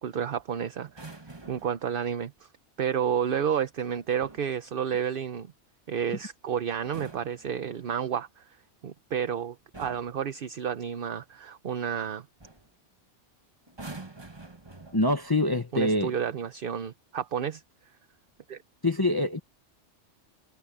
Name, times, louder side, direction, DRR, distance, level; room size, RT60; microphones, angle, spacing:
voice 1, 0.0-2.5 2.8-5.5 5.9-8.6 8.8-12.2 15.7-17.6 18.5-18.6, right 8 dB, 55° right, 0.9 m, -31 dB
sound 1, 0.8-1.8 3.9-4.5 6.7-8.1 9.1-9.3 9.7-10.2 11.9-12.1 12.4-12.7 13.7-15.3 16.3-16.5, right 2 dB, 20° right, 1.6 m, -46 dB
voice 2, 14.9-16.2 18.8-19.4, left 1 dB, 20° left, 1.1 m, -25 dB
omnidirectional pair, 1.2 m